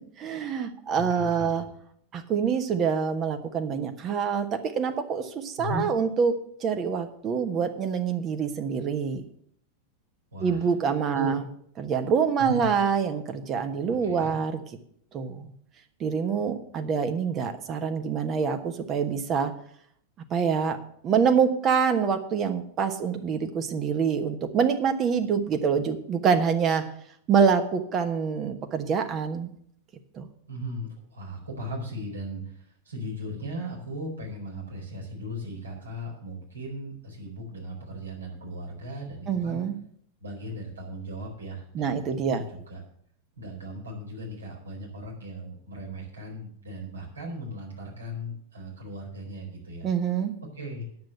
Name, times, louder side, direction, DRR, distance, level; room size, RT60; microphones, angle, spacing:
voice 1, 0.2-1.6 2.1-9.2 10.4-11.4 11.8-14.6 15.1-15.5 16.0-19.5 20.3-20.8 21.0-26.8 27.3-29.5 30.2-30.3 39.3-39.7 41.7-42.5 49.8-50.3, right 6 dB, 30° right, 7 dB, 1.3 m, -26 dB
voice 2, 1.1-1.5 5.6-5.9 10.3-10.7 11.1-11.4 12.4-12.6 14.0-14.4 30.5-32.6 32.8-39.6 40.2-42.8 43.4-49.9 50.5-50.9, equal, 75° right, -2 dB, 4.3 m, -37 dB
9.5 x 7.7 x 8.1 m, 0.66 s
figure-of-eight pair, 90°, 0 cm